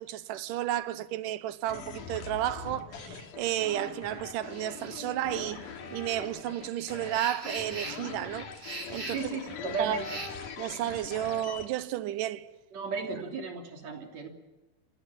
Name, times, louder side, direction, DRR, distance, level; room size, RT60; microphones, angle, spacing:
voice 1, 0.0-5.6 5.9-8.5 8.9-9.3 9.8-10.0 10.6-12.5, right 13 dB, 90° right, 2.5 m, -32 dB
sound 1, 1.7-11.7, left 6 dB, 80° left, 3.6 m, -42 dB
sound 2, 4.4-10.3, right 2 dB, 25° right, 3.0 m, -43 dB
voice 2, 9.1-10.2 12.7-14.3, right 4 dB, 55° right, 4.2 m, -35 dB
27.0 x 18.5 x 7.2 m
omnidirectional pair, 3.7 m